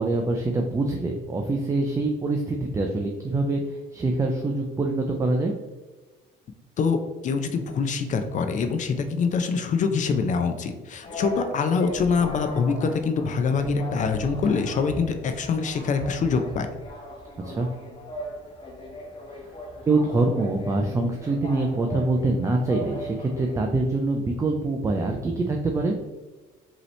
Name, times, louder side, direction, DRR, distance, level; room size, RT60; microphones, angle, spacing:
voice 1, 0.0-5.5 17.4-17.7 19.9-25.9, right 2 dB, 15° right, 2 dB, 0.3 m, -25 dB
voice 2, 7.2-16.7, left 5 dB, 40° left, 7 dB, 0.5 m, -24 dB
sound 1, 11.0-23.6, equal, 25° left, 0.9 m, -38 dB
5.3 x 2.9 x 3.2 m, 1.3 s
cardioid pair, 135°, 19 cm